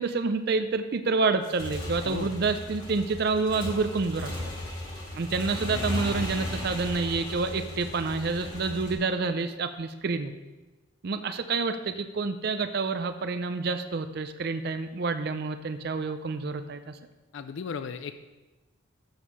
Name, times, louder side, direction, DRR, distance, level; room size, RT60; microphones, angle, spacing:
voice 1, 0.0-4.3 5.1-10.3 11.0-17.0, right 4 dB, 50° right, 9 dB, 0.4 m, -28 dB
Motorcycle / Engine, 1.3-8.9, left 1 dB, 20° left, 1.6 m, -36 dB
voice 2, 17.3-18.2, left 5 dB, 65° left, 10 dB, 0.4 m, -36 dB
7.1 x 6.5 x 6.0 m, 1.2 s
head